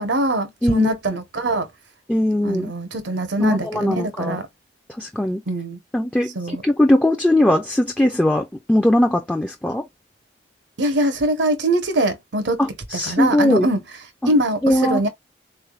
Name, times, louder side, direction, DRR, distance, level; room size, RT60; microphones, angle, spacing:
voice 1, 0.0-1.7 2.4-4.5 5.5-5.8 6.3-6.6 10.8-12.6 13.0-13.8 14.3-15.1, right 1 dB, 80° right, 0.9 m, -22 dB
voice 2, 2.1-2.7 3.4-4.4 5.0-5.4 5.9-9.8 12.6-13.7 14.2-14.3 14.6-15.0, left 1 dB, 5° left, 0.4 m, -19 dB
4.0 x 3.3 x 2.3 m
head